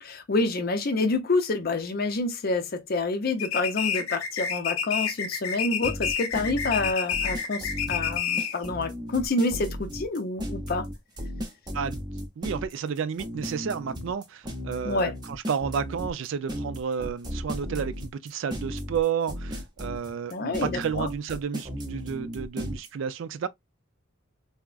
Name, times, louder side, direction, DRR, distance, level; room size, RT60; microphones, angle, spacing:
voice 1, 0.0-10.9 14.8-15.1 20.3-21.1, left 3 dB, 45° left, 0.5 m, -28 dB
sound 1, 3.4-8.7, left 7 dB, 90° left, 0.6 m, -29 dB
sound 2, 5.8-22.9, equal, 20° right, 0.6 m, -35 dB
voice 2, 12.4-23.5, right 7 dB, 65° right, 0.3 m, -31 dB
3.5 x 2.0 x 2.3 m
head